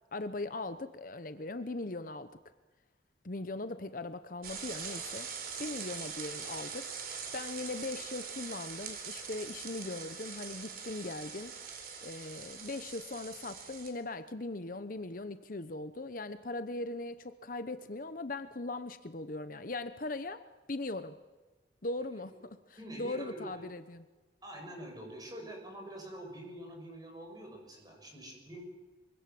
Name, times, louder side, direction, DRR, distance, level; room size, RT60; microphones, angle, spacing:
voice 1, 0.1-2.3 3.2-5.3 5.6-6.9 7.3-11.5 12.0-21.2 21.8-22.6 23.0-24.0, left 2 dB, 50° left, 11 dB, 0.9 m, -39 dB
sound 1, 4.4-13.9, right 6 dB, 55° right, 4.4 m, -43 dB
voice 2, 22.8-23.7 24.4-28.6, right 1 dB, 20° right, 2 dB, 7.6 m, -45 dB
24.0 x 24.0 x 7.8 m, 1.2 s
head